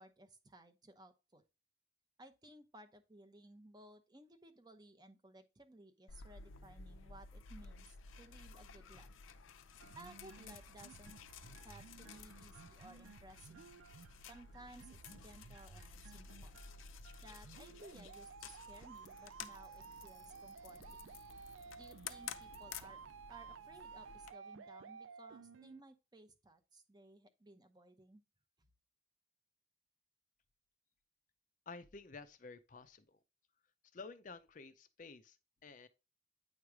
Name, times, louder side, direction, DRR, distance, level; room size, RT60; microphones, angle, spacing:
voice 1, 0.0-1.4 2.2-9.1 10.0-11.2 11.6-13.6 14.3-16.6 17.2-21.1 21.8-23.0 23.3-28.2, right 1 dB, 20° right, 0.8 m, -59 dB
sound 1, 6.1-24.3, left 6 dB, 90° left, 0.6 m, -53 dB
sound 2, 9.8-25.8, right 6 dB, 80° right, 0.4 m, -55 dB
voice 2, 31.7-33.2 33.9-35.4 35.6-35.9, left 4 dB, 40° left, 0.5 m, -52 dB
9.4 x 3.1 x 4.8 m
head